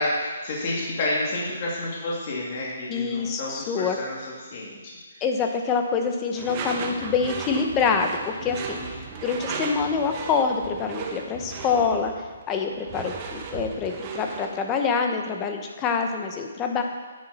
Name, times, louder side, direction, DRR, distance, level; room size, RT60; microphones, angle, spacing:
voice 1, 0.0-4.2 4.5-4.8 8.4-9.0, left 1 dB, 35° left, -5 dB, 2.4 m, -29 dB
voice 2, 2.9-4.0 5.2-8.8 9.2-12.1 12.5-16.8, left 5 dB, 15° left, 4 dB, 0.8 m, -26 dB
Door / Screech, 6.3-14.6, right 5 dB, 25° right, 1.0 m, -36 dB
11.5 x 9.8 x 4.2 m, 1.4 s
hypercardioid pair, 170°, 0 cm